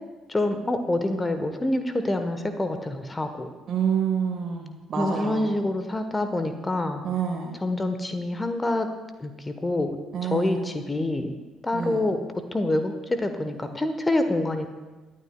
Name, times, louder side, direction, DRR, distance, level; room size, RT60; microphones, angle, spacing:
voice 1, 0.3-3.5 4.9-7.0 7.6-8.9 9.2-10.0 10.2-11.3 11.6-12.2 12.5-14.7, left 2 dB, 20° left, 8 dB, 1.0 m, -26 dB
voice 2, 3.7-5.5 7.0-7.5 10.1-10.7 11.7-12.0, right 7 dB, 45° right, 1 dB, 1.4 m, -28 dB
21.5 x 11.0 x 2.2 m, 1.2 s
figure-of-eight pair, 45°, 0 cm